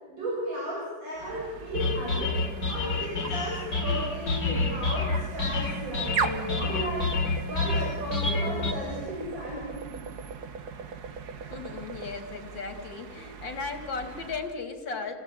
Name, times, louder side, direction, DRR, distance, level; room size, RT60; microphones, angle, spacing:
voice 1, 0.1-2.4 2.7-7.1 7.5-10.1, equal, 85° right, -5 dB, 8.0 m, -34 dB
sound 1, 1.2-14.6, right 6 dB, 60° right, 1.9 m, -39 dB
sound 2, 1.7-8.7, left 3 dB, 70° left, 3.8 m, -29 dB
voice 2, 11.5-15.1, left 4 dB, 85° left, 5 dB, 3.8 m, -36 dB
29.0 x 18.5 x 9.2 m, 1.3 s
omnidirectional pair, 2.0 m